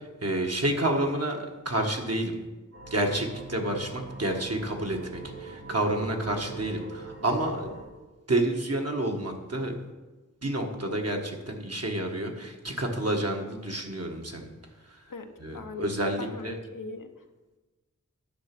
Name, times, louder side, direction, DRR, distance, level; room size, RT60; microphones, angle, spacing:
voice 1, 0.0-2.3 2.9-7.7 8.3-9.7 10.4-14.5 15.4-16.6, right 1 dB, 50° right, 2 dB, 1.6 m, -29 dB
sound 1, 2.7-7.8, right 4 dB, 90° right, 4.0 m, -43 dB
voice 2, 15.1-15.9 16.2-17.1, left 3 dB, 75° left, 5 dB, 1.0 m, -40 dB
10.5 x 7.0 x 6.0 m, 1.2 s
wide cardioid pair, 55°, 32 cm